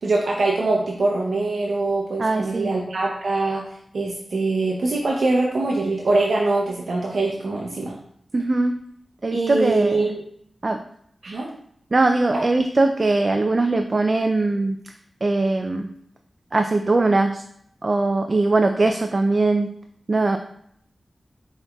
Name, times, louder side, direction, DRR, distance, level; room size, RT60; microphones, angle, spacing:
voice 1, 0.0-3.6 3.9-7.9 9.3-10.2 11.2-11.5, right 2 dB, 75° right, -3 dB, 0.6 m, -23 dB
voice 2, 2.2-2.7 8.3-8.7 9.2-10.1 10.6-10.8 11.9-14.8 15.2-15.9 16.5-17.4 17.8-19.7 20.1-20.4, right 2 dB, 45° right, 6 dB, 0.3 m, -20 dB
5.6 x 4.0 x 2.3 m, 0.68 s
cardioid pair, 55°, 0 cm